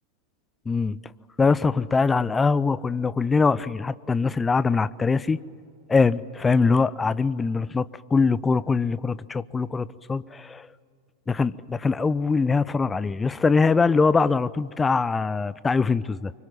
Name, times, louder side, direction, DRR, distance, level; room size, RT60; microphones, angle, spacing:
voice 1, 0.7-1.0 1.4-5.4 5.9-10.7 11.3-16.3, left 4 dB, 15° left, 18 dB, 0.6 m, -22 dB
25.5 x 24.0 x 7.6 m, 2.2 s
figure-of-eight pair, 90°, 0 cm